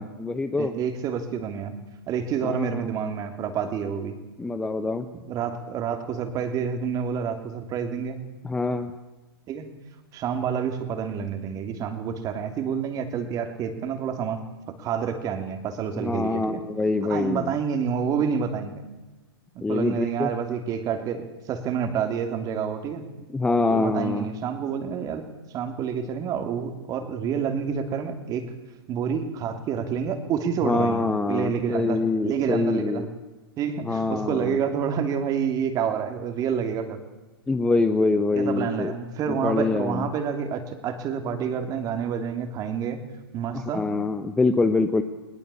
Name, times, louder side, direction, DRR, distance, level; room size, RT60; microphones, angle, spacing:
voice 1, 0.0-0.7 2.4-2.9 4.4-5.1 8.4-8.9 16.0-17.5 19.6-20.3 23.3-24.3 30.6-33.1 33.8-34.6 37.5-38.9 39.3-40.1 43.5-45.0, left 3 dB, 5° left, 9 dB, 0.9 m, -25 dB
voice 2, 0.6-1.7 2.1-4.2 5.3-8.2 9.5-9.8 10.1-14.4 14.8-16.6 17.0-18.8 19.5-23.1 23.7-25.3 25.5-28.5 28.9-33.1 33.6-37.0 38.4-43.0 43.3-43.9, right 7 dB, 30° right, 8 dB, 2.8 m, -28 dB
20.0 x 19.0 x 8.5 m, 1.1 s
hypercardioid pair, 125°, 13 cm